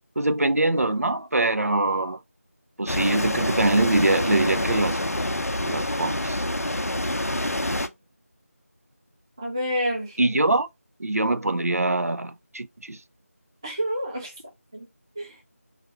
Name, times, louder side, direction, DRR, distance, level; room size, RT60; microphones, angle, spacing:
voice 1, 0.2-2.2 2.8-5.0 5.6-6.4 10.2-10.7 11.0-13.0, right 2 dB, 70° right, 0.5 m, -23 dB
sound 1, 2.9-7.9, left 1 dB, 80° left, 0.6 m, -27 dB
voice 2, 9.4-10.2 13.6-14.3 14.7-14.9 15.2-15.3, equal, 15° right, 0.7 m, -29 dB
3.4 x 2.5 x 4.5 m
figure-of-eight pair, 170°, 8 cm